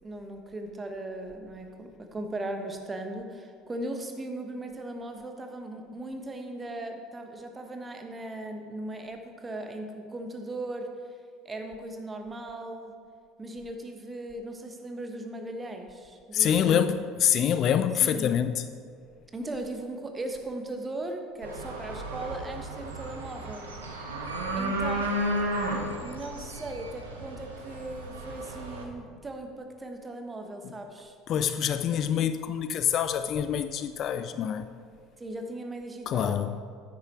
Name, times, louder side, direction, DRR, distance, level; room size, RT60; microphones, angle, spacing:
voice 1, 0.0-10.9 11.4-12.9 13.4-16.8 18.0-18.3 19.3-24.0 24.6-25.1 26.0-31.2 35.2-36.5, right 1 dB, 20° right, 4 dB, 1.3 m, -38 dB
voice 2, 16.3-18.6 31.3-34.6 36.1-36.6, left 9 dB, 45° left, 11 dB, 0.4 m, -26 dB
sound 1, 21.4-28.8, right 1 dB, 75° right, 1.2 m, -33 dB
9.5 x 8.7 x 4.5 m, 2.2 s
figure-of-eight pair, 65°, 0 cm